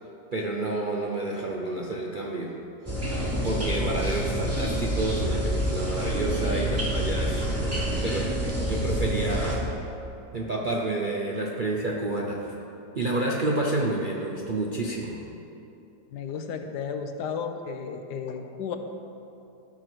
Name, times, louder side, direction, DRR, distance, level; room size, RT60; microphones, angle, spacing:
voice 1, 0.3-2.6 3.1-3.2 3.4-9.7 10.3-12.6 12.9-15.2, right 2 dB, 55° right, -1 dB, 0.5 m, -29 dB
sound 1, 2.9-9.6, equal, 10° right, 1.4 m, -27 dB
voice 2, 16.1-18.8, left 6 dB, 85° left, 6 dB, 1.3 m, -33 dB
13.0 x 4.5 x 6.1 m, 2.8 s
omnidirectional pair, 1.8 m